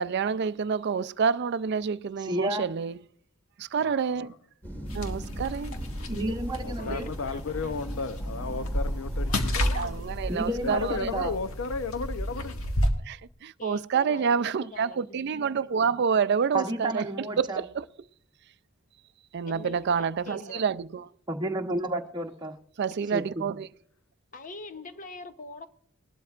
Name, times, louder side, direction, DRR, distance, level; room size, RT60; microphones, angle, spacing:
voice 1, 0.0-3.0 3.6-4.3 4.9-5.7 6.9-7.0 9.8-11.3 13.0-17.1 17.4-17.9 19.3-21.1 22.8-23.7, right 6 dB, 55° right, 0.4 m, -28 dB
voice 2, 2.2-2.6 6.1-7.1 10.3-11.3 16.5-17.6 21.3-22.6 23.1-23.5, right 1 dB, 20° right, 0.9 m, -31 dB
voice 3, 3.8-4.3 6.5-10.1 10.6-12.6, left 4 dB, 65° left, 0.7 m, -34 dB
sound 1, 4.6-9.7, equal, 10° left, 3.8 m, -41 dB
sound 2, 4.8-12.9, equal, 80° left, 1.6 m, -31 dB
voice 4, 6.8-7.8 9.3-9.9 13.6-15.1 19.5-20.6 24.3-25.7, left 3 dB, 40° left, 0.9 m, -43 dB
20.0 x 12.0 x 2.5 m
head